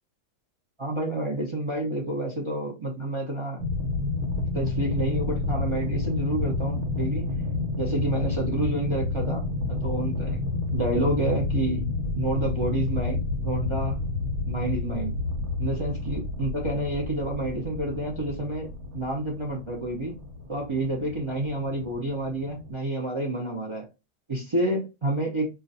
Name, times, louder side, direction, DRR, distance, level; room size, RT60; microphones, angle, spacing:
voice 1, 0.8-3.6 4.5-7.3 7.8-9.4 9.7-10.4 10.7-11.8 12.2-14.0 14.5-15.1 15.6-18.7 18.9-20.1 20.5-23.8 24.3-25.5, right 1 dB, 40° right, -1 dB, 0.4 m, -29 dB
sound 1, 3.6-22.7, left 3 dB, 85° right, 1.2 m, -30 dB
2.4 x 2.2 x 3.9 m, 0.27 s
omnidirectional pair, 1.4 m